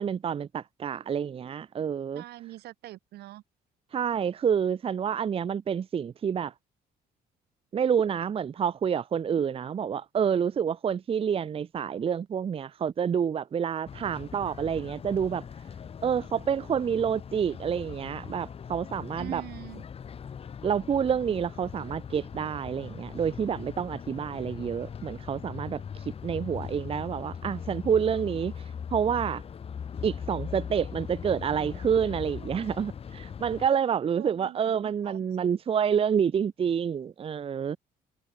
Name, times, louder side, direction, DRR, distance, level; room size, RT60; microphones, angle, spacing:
voice 1, 0.0-2.2 3.9-6.5 7.7-15.4 16.0-19.4 20.6-28.5 28.9-29.4 30.0-37.8, right 7 dB, 35° right, 0.7 m, -28 dB
voice 2, 2.1-3.4 19.2-19.8 34.1-35.5, right 15 dB, 75° right, 1.4 m, -44 dB
sound 1, 13.9-33.7, left 7 dB, 35° left, 1.1 m, -40 dB
cardioid pair, 110°, 17 cm